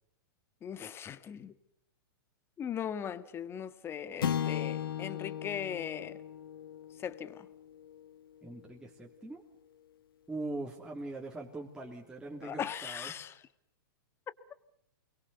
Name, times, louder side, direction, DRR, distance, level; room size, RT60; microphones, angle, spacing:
voice 1, 0.6-1.5 2.6-6.2 7.0-7.5 12.4-13.4, left 8 dB, 20° left, 1.7 m, -39 dB
sound 1, 4.2-8.7, left 9 dB, 80° left, 2.0 m, -37 dB
voice 2, 8.4-9.4 10.3-13.1, right 2 dB, 5° right, 3.1 m, -41 dB
29.0 x 22.5 x 6.9 m
hypercardioid pair, 135°, 12 cm